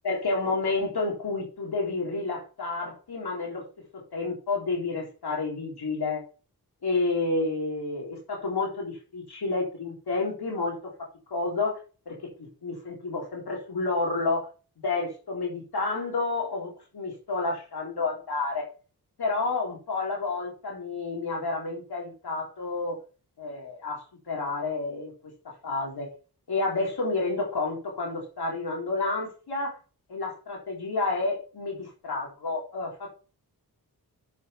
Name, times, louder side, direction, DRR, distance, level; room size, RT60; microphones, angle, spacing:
voice 1, 0.0-3.7 3.9-6.2 6.8-11.8 12.1-14.5 14.8-18.6 19.2-23.0 23.4-26.1 26.5-29.8 30.1-33.1, left 3 dB, 80° left, -1 dB, 3.6 m, -30 dB
7.3 x 7.2 x 5.7 m, 0.35 s
cardioid pair, 60°, 38 cm